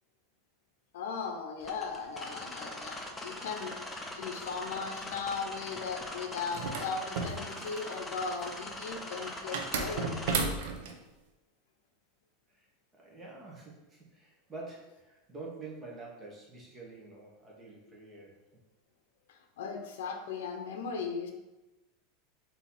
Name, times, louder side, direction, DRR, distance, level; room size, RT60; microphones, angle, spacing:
voice 1, 0.9-3.8 4.2-10.1 19.3-21.3, left 5 dB, 80° left, 4 dB, 0.6 m, -37 dB
sound 1, 1.6-10.4, left 1 dB, 10° left, 0.6 m, -42 dB
sound 2, 6.5-8.0 9.5-11.0, right 4 dB, 75° right, 0.6 m, -33 dB
voice 2, 13.0-18.4, right 3 dB, 20° right, -3 dB, 1.2 m, -47 dB
4.0 x 2.8 x 4.0 m, 1.0 s
supercardioid pair, 135°, 0 cm